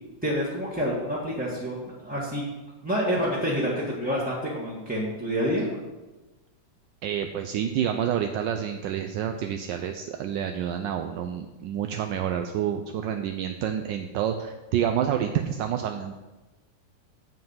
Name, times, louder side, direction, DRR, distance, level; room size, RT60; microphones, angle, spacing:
voice 1, 0.2-2.5 2.8-5.7, equal, 5° right, -7 dB, 1.2 m, -28 dB
voice 2, 7.0-16.1, right 9 dB, 75° right, 5 dB, 1.2 m, -28 dB
7.8 x 7.6 x 5.5 m, 1.1 s
omnidirectional pair, 2.0 m